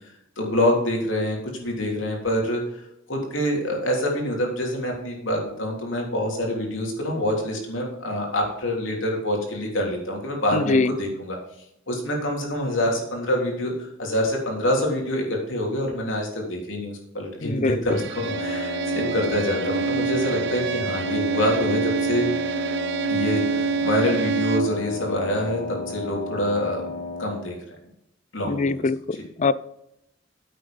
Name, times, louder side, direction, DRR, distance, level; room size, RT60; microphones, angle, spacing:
voice 1, 0.4-2.8 3.1-11.4 11.9-13.7 14.0-22.2 23.1-26.9 27.2-27.8 28.3-28.9 29.1-29.2, left 1 dB, 70° left, 0 dB, 3.4 m, -26 dB
voice 2, 10.5-10.9 17.4-17.8 28.5-29.5, left 3 dB, 35° left, 17 dB, 0.4 m, -23 dB
Bowed string instrument, 17.9-24.8, right 5 dB, 60° right, 0.6 m, -26 dB
Wind instrument woodwind instrument, 18.1-27.5, left 3 dB, 55° left, 2.6 m, -33 dB
9.8 x 7.7 x 5.3 m, 0.81 s
head